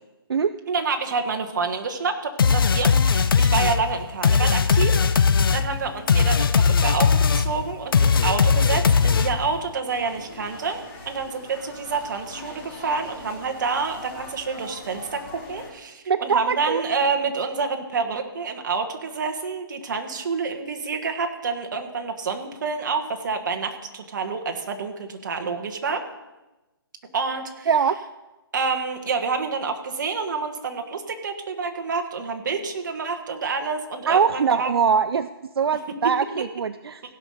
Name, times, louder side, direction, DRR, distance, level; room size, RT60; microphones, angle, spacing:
voice 1, 0.7-26.0 27.1-27.7 28.5-34.7, right 4 dB, 50° right, 5 dB, 1.5 m, -28 dB
sound 1, 2.4-9.6, left 5 dB, 60° left, 0.7 m, -19 dB
sound 2, 9.9-15.7, left 2 dB, 25° left, 3.0 m, -42 dB
voice 2, 16.1-16.8 27.7-28.0 34.1-35.3 35.6-37.0, right 6 dB, 75° right, 11 dB, 0.5 m, -22 dB
16.5 x 5.6 x 6.6 m, 1.0 s
hypercardioid pair, 165°, 13 cm